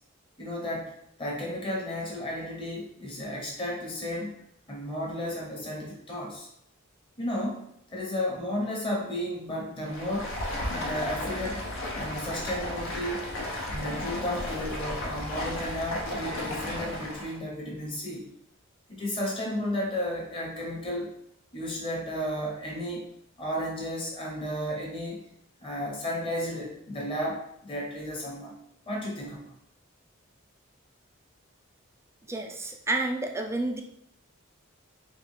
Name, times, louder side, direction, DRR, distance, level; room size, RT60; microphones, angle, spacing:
voice 1, 0.4-0.9 1.2-4.3 4.7-6.5 7.2-10.4 10.7-11.7 12.0-13.2 13.7-18.3 18.9-21.1 21.5-23.1 23.4-25.2 25.6-28.6 28.9-29.5, equal, 25° left, -3 dB, 1.0 m, -33 dB
Stream, 9.8-17.4, left 1 dB, 70° left, 0.8 m, -34 dB
voice 2, 32.3-33.8, right 2 dB, 15° right, 3 dB, 0.3 m, -30 dB
3.8 x 2.3 x 3.4 m, 0.73 s
head